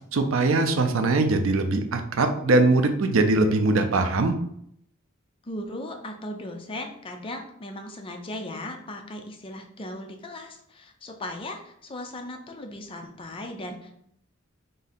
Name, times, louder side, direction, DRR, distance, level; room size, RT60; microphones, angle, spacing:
voice 1, 0.1-4.3, right 2 dB, 70° right, 7 dB, 0.5 m, -21 dB
voice 2, 5.4-13.9, left 1 dB, 25° left, 4 dB, 0.5 m, -37 dB
3.8 x 2.6 x 4.1 m, 0.71 s
head